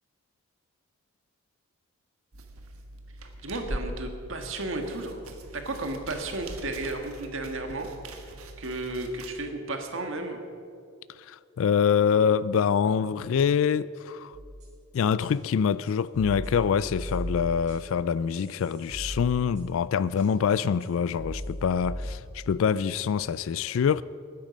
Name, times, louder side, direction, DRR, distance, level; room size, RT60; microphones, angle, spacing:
sound 1, 2.3-9.3, right 1 dB, 85° right, 1.4 m, -42 dB
voice 1, 3.4-5.2 5.5-7.9 8.6-10.4, right 2 dB, 65° right, 1.6 m, -33 dB
voice 2, 11.2-14.4 14.9-24.0, left 7 dB, 70° left, 0.3 m, -25 dB
sound 2, 14.3-14.8 15.2-15.3 15.8-18.0 18.3-19.8 20.2-20.3 20.8-20.9 21.2-22.5, equal, 35° right, 4.1 m, -37 dB
19.5 x 10.0 x 5.2 m
head